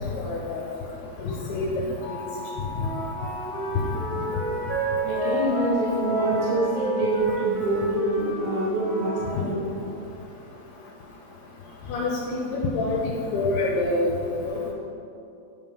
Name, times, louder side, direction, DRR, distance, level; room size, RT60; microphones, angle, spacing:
voice 1, 0.2-0.6 1.2-1.7 11.9-13.0 13.3-14.1 14.5-14.7, left 2 dB, 80° left, -3 dB, 2.6 m, -26 dB
sound 1, 2.0-7.3, left 2 dB, 65° left, 2.8 m, -37 dB
Wind instrument woodwind instrument, 2.7-9.3, right 2 dB, 55° right, 1.3 m, -30 dB
voice 2, 5.0-9.6, right 1 dB, 85° right, -6 dB, 3.7 m, -25 dB
10.0 x 3.6 x 5.4 m, 2.6 s
omnidirectional pair, 4.8 m